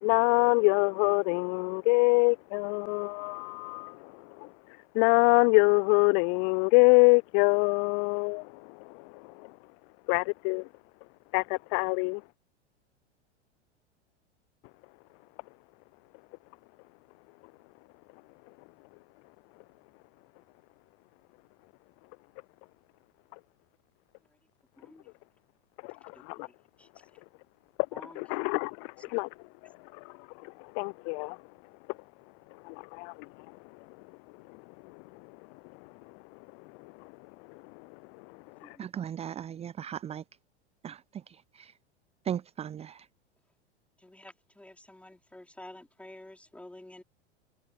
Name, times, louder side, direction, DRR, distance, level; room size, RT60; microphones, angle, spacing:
voice 1, 0.0-4.5 4.9-9.5 10.1-10.7 11.3-12.2 25.8-26.5 28.0-29.3 30.0-30.1 30.4-31.4 32.6-33.1 36.8-36.9 38.6-38.8, left 40 dB or more, 30° left, 0.4 m, -25 dB
voice 2, 27.9-28.2 38.6-38.9 44.0-47.0, left 1 dB, 5° left, 4.0 m, -49 dB
voice 3, 38.8-40.2 40.8-41.7 42.2-43.1, right 9 dB, 20° right, 0.8 m, -37 dB
figure-of-eight pair, 90°, 34 cm